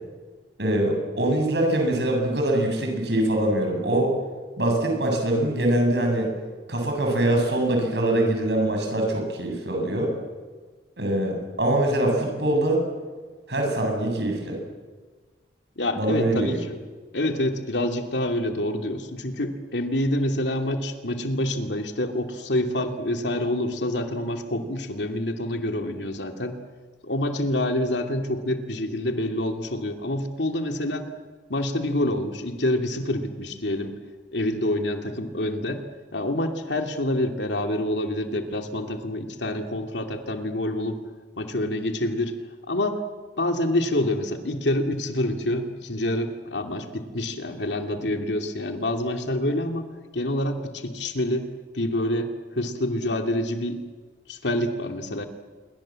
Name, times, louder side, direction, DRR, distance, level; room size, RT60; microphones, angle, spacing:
voice 1, 0.6-4.2 4.6-6.3 6.7-10.1 11.0-12.8 13.5-14.6 15.9-16.6, right 1 dB, 70° right, 2 dB, 8.0 m, -23 dB
voice 2, 15.8-16.8 17.1-26.6 27.0-31.1 31.5-33.9 34.3-35.8 36.1-41.0 41.4-42.4 42.7-43.0 43.4-51.5 51.7-53.8 54.3-55.2, left 1 dB, 80° left, 5 dB, 2.6 m, -27 dB
27.0 x 23.5 x 7.6 m, 1.4 s
head